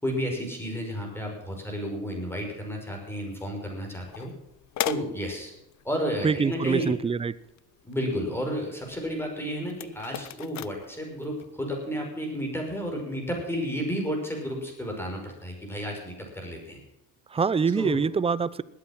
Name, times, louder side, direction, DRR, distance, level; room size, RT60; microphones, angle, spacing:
voice 1, 0.0-4.3 4.8-5.5 5.8-6.9 7.8-16.8 17.7-18.0, equal, 5° left, 1 dB, 5.8 m, -32 dB
sound 1, 4.0-11.5, left 12 dB, 45° left, 0.7 m, -39 dB
voice 2, 6.2-7.4 17.3-18.6, right 5 dB, 15° right, 18 dB, 0.6 m, -25 dB
20.0 x 8.6 x 6.1 m, 0.85 s
supercardioid pair, 105°, 39 cm